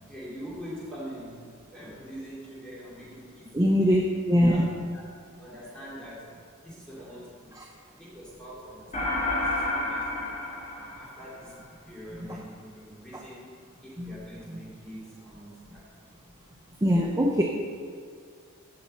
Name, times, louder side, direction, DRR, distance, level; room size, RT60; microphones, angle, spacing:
voice 1, 0.0-4.0 4.5-5.0 5.4-6.3 6.6-7.6 8.0-10.3 10.7-11.6 11.8-13.5 13.8-15.9, equal, 5° left, -8 dB, 2.5 m, -44 dB
voice 2, 3.5-4.0 4.3-4.6 7.6-7.7 12.3-12.4 14.0-14.1 14.5-14.6 16.8-17.4, equal, 15° right, 1 dB, 0.6 m, -22 dB
sound 1, 8.9-11.6, left 2 dB, 35° left, 2.5 m, -30 dB
15.5 x 5.6 x 4.2 m, 2.2 s
head